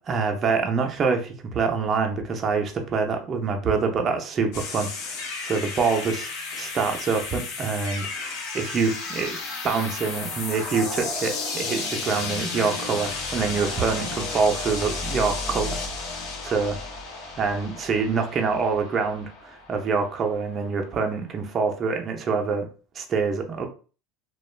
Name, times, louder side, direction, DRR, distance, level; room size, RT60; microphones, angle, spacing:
voice 1, 0.1-9.4 9.6-15.8 16.1-16.7 17.4-22.7 22.9-23.7, right 5 dB, 30° right, 3 dB, 0.5 m, -26 dB
sound 1, 4.5-20.4, left 3 dB, 70° left, 0.7 m, -33 dB
2.2 x 2.2 x 3.1 m, 0.37 s
supercardioid pair, 140°, 0 cm